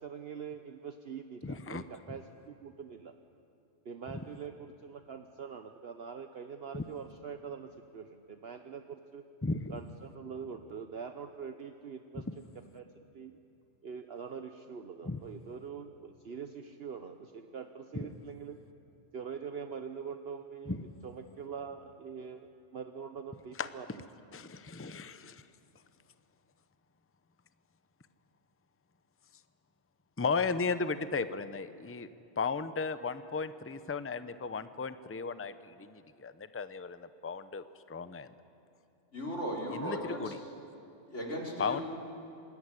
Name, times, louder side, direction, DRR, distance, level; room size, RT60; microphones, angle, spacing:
voice 1, 0.0-3.1 3.8-9.2 9.7-12.3 12.7-12.8 13.1-13.4 13.8-18.6 19.1-20.8 21.0-24.0, right 6 dB, 55° right, 7 dB, 1.2 m, -44 dB
voice 2, 1.4-1.8 6.7-6.8 9.4-9.8 15.1-15.2 18.0-18.1 20.7-20.8 23.6-23.7 24.3-25.4 30.2-32.1 32.4-37.6 37.9-38.3 39.7-40.4 41.6-41.8, left 4 dB, 15° left, 12 dB, 0.7 m, -35 dB
voice 3, 39.1-40.3 41.1-41.8, equal, 75° left, -1 dB, 4.5 m, -37 dB
26.0 x 20.5 x 9.9 m, 2.8 s
omnidirectional pair, 1.3 m